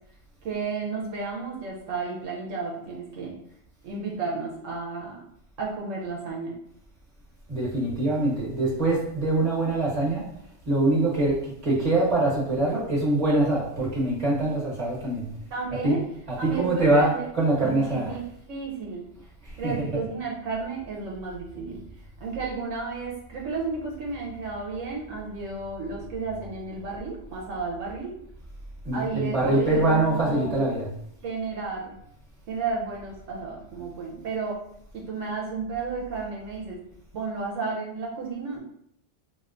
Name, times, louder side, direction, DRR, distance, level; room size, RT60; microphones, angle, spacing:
voice 1, 0.4-3.4 3.8-5.2 5.6-6.5 15.5-16.0 16.4-17.3 17.6-18.2 18.5-19.1 19.6-21.8 22.2-28.1 28.9-30.6 31.2-32.0 32.5-34.6 34.9-36.8 37.1-38.6, right 4 dB, 75° right, -2 dB, 1.0 m, -32 dB
voice 2, 7.5-10.2 10.7-15.2 15.8-16.0 16.4-18.2 19.4-20.0 28.8-30.9, right 2 dB, 30° right, -4 dB, 1.1 m, -24 dB
3.2 x 2.8 x 2.4 m, 0.71 s
omnidirectional pair, 1.3 m